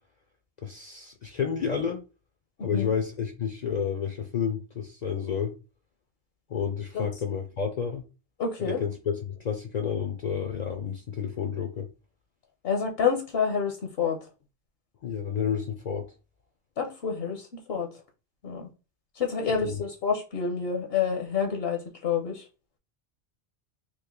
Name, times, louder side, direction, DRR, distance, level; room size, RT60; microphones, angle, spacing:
voice 1, 0.6-2.0 2.6-5.5 6.5-8.0 8.6-11.9 15.0-16.1 19.5-19.8, left 7 dB, 55° left, 0.5 m, -30 dB
voice 2, 2.6-2.9 6.9-7.1 8.4-8.8 12.6-14.2 16.8-17.9 18.4-18.7 19.2-22.4, left 6 dB, 70° left, 0.9 m, -28 dB
3.1 x 2.5 x 3.6 m
omnidirectional pair, 1.1 m